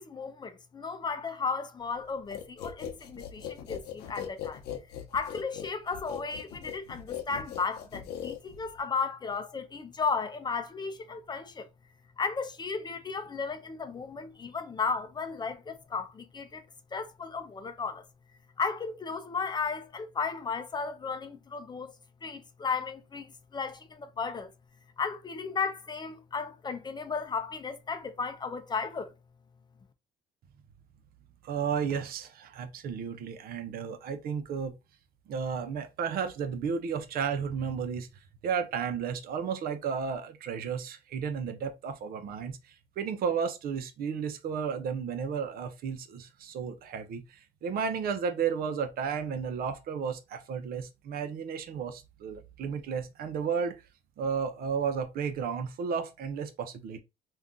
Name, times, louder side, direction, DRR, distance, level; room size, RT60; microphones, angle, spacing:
voice 1, 0.0-4.6 5.1-11.7 12.2-16.6 16.9-18.0 18.6-22.0 22.2-24.5 25.0-29.1, left 5 dB, 25° left, 0.5 m, -34 dB
sound 1, 2.3-8.8, left 9 dB, 80° left, 0.7 m, -40 dB
voice 2, 31.4-34.7 35.3-38.1 38.4-53.8 54.2-57.0, right 6 dB, 60° right, 0.6 m, -33 dB
2.7 x 2.3 x 3.6 m
cardioid pair, 110°, 17 cm